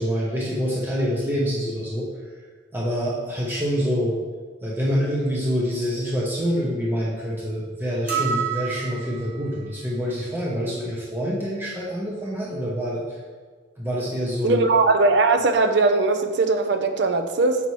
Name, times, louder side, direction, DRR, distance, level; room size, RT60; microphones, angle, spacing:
voice 1, 0.0-2.1 2.7-4.2 4.6-13.0 13.8-14.6, equal, 10° right, -5 dB, 0.8 m, -26 dB
sound 1, 8.1-9.4, right 7 dB, 45° right, 1.2 m, -28 dB
voice 2, 14.4-17.6, right 3 dB, 60° right, 7 dB, 0.6 m, -19 dB
6.8 x 5.5 x 3.1 m, 1.5 s
head